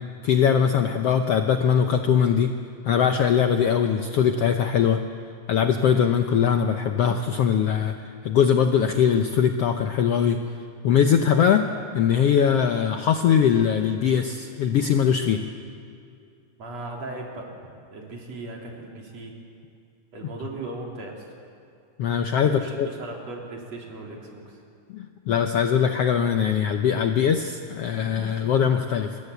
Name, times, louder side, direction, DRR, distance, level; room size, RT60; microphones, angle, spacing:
voice 1, 0.2-2.5 2.8-5.0 5.5-7.9 8.2-10.4 10.8-11.7 11.9-15.5 22.0-22.9 24.9-29.2, left 8 dB, 90° left, 6 dB, 1.3 m, -21 dB
voice 2, 16.6-17.5 17.9-19.3 20.1-21.2 22.4-24.6, right 2 dB, 50° right, -1 dB, 4.6 m, -37 dB
27.0 x 21.5 x 8.2 m, 2.4 s
omnidirectional pair, 4.0 m